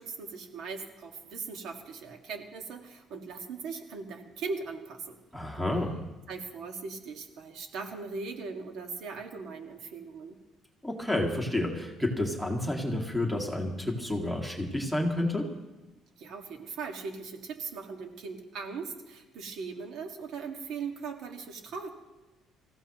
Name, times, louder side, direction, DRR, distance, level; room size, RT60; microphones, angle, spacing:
voice 1, 0.0-5.2 6.3-10.4 16.2-21.9, right 4 dB, 65° right, 3 dB, 1.9 m, -39 dB
voice 2, 5.3-5.9 10.8-15.5, left 1 dB, ahead, 0 dB, 2.1 m, -30 dB
25.5 x 15.5 x 3.1 m, 1.1 s
cardioid pair, 150°, 0 cm